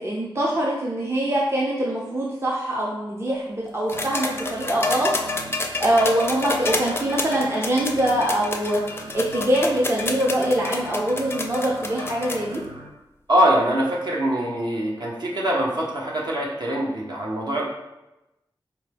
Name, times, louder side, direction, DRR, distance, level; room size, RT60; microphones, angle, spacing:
voice 1, 0.0-5.1 5.8-12.6, right 1 dB, 30° right, -3 dB, 0.6 m, -23 dB
sound 1, 3.9-12.6 13.8-13.9, left 3 dB, 25° left, 0.4 m, -29 dB
sound 2, 3.9-12.9, right 2 dB, 80° right, 0.5 m, -41 dB
voice 2, 13.3-17.6, equal, 55° right, -3 dB, 0.9 m, -23 dB
4.4 x 2.2 x 3.3 m, 0.96 s
wide cardioid pair, 70°, 9 cm